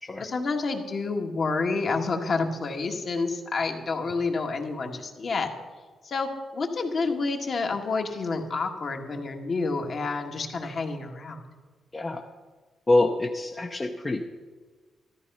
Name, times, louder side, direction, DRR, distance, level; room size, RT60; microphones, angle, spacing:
voice 1, 0.2-5.5 6.0-11.4, left 4 dB, 45° left, 3 dB, 1.7 m, -29 dB
voice 2, 11.9-12.2 12.9-14.2, left 2 dB, 20° left, 2 dB, 0.8 m, -25 dB
13.5 x 13.5 x 5.5 m, 1.4 s
cardioid pair, 125°, 0 cm